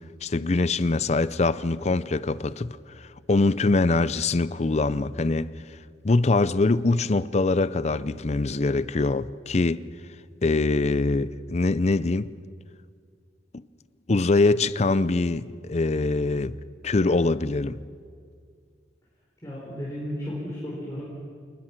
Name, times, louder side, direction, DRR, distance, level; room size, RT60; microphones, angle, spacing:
voice 1, 0.2-5.5 6.0-9.8 10.4-12.3 14.1-16.6 16.8-17.8, left 3 dB, 40° left, 0.6 m, -23 dB
voice 2, 19.4-21.0, equal, 20° left, 4.5 m, -33 dB
27.0 x 20.0 x 6.0 m
head